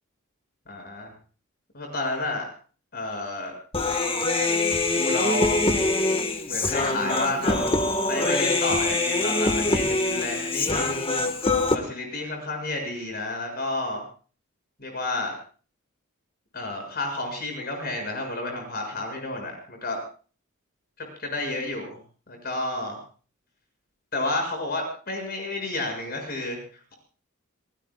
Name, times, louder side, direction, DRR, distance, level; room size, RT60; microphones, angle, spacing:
voice 1, 0.7-1.1 1.7-2.5 2.9-3.5 4.9-5.6 6.5-7.7 8.1-11.0 11.7-14.0 14.8-15.4 16.5-20.0 21.0-22.0 22.3-23.0 24.1-26.9, left 2 dB, 50° left, 3 dB, 7.2 m, -31 dB
Human voice, 3.7-11.8, left 2 dB, 25° left, 1.7 m, -24 dB
29.5 x 19.5 x 2.5 m, 0.40 s
head